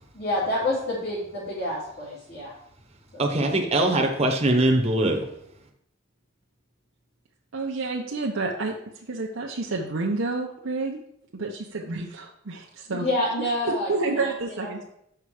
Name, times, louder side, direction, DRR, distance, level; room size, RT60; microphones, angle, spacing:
voice 1, 0.2-2.5 3.1-3.5 12.9-14.9, left 1 dB, 55° left, -9 dB, 2.7 m, -29 dB
voice 2, 3.2-5.2, right 1 dB, 30° right, 3 dB, 1.0 m, -22 dB
voice 3, 7.5-8.8 9.0-11.0 11.3-13.1 13.6-14.9, right 3 dB, 90° right, -1 dB, 0.8 m, -29 dB
6.9 x 5.7 x 4.8 m, 0.75 s
head